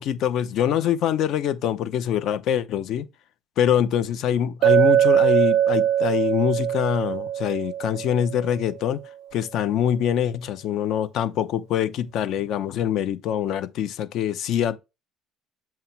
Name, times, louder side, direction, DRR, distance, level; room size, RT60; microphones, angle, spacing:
voice 1, 0.0-3.1 3.6-9.0 9.3-14.8, left 9 dB, 55° left, 0.8 m, -24 dB
Chink clink, 4.6-8.6, right 10 dB, 70° right, 0.4 m, -21 dB
7.6 x 3.0 x 4.5 m
cardioid pair, 130°, 0 cm